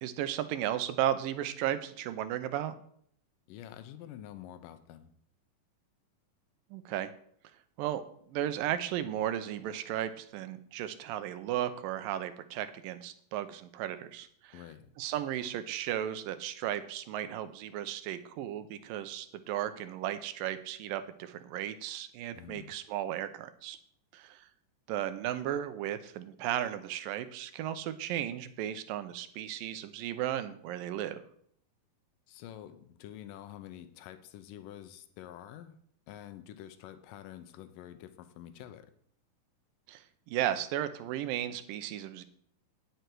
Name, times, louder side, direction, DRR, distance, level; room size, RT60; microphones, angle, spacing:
voice 1, 0.0-2.7 6.7-7.1 7.8-8.0 8.3-14.6 15.0-23.8 24.1-24.5 24.9-31.2 39.9-42.2, right 11 dB, 85° right, 11 dB, 2.5 m, -35 dB
voice 2, 3.5-5.1 14.5-14.9 22.3-22.8 32.3-35.8 36.1-38.9, left 11 dB, 85° left, 10 dB, 2.4 m, -48 dB
10.5 x 7.9 x 4.6 m, 0.64 s
omnidirectional pair, 3.9 m